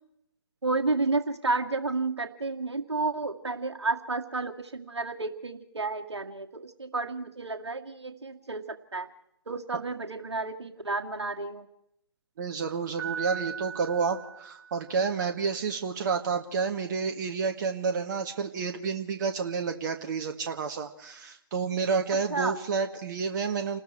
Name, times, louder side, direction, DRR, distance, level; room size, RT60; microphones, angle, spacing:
voice 1, 0.6-9.1 9.5-11.7 22.3-22.5, right 3 dB, 75° right, 5 dB, 2.2 m, -31 dB
voice 2, 12.4-23.8, right 5 dB, 40° right, 5 dB, 1.6 m, -30 dB
Piano, 13.0-15.1, right 7 dB, 15° right, 3.6 m, -38 dB
29.0 x 20.0 x 4.5 m, 0.76 s
figure-of-eight pair, 135°, 14 cm